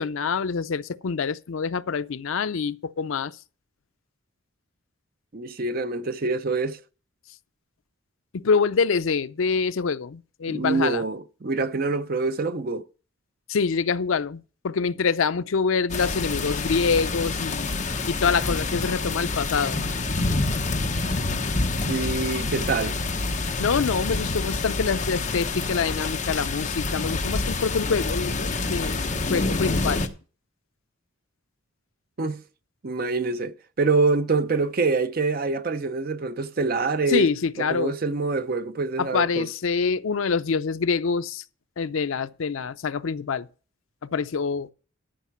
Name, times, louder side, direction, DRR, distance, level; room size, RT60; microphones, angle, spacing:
voice 1, 0.0-3.3 8.3-11.0 13.5-17.7 18.1-19.8 23.6-30.0 37.1-37.9 39.0-41.4 41.8-43.5 44.0-44.7, left 5 dB, 75° left, 0.5 m, -25 dB
voice 2, 5.3-6.8 10.5-12.8 21.9-23.0 32.2-32.4 32.8-37.3 37.7-39.5, right 3 dB, 45° right, 0.6 m, -25 dB
sound 1, 15.9-30.1, left 3 dB, 35° left, 1.0 m, -27 dB
12.5 x 5.7 x 5.9 m
head